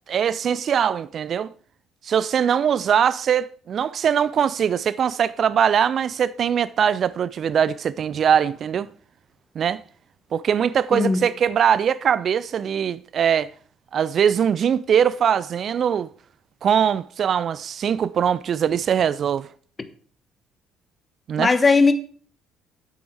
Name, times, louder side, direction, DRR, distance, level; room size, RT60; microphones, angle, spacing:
voice 1, 0.1-1.5 2.0-8.9 9.6-9.8 10.3-13.5 13.9-16.1 16.6-19.5 21.3-21.5, right 8 dB, 45° right, 0.4 m, -21 dB
voice 2, 10.9-11.2 21.4-21.9, left 4 dB, 25° left, 1.2 m, -17 dB
9.3 x 8.7 x 4.6 m
figure-of-eight pair, 50°, 0 cm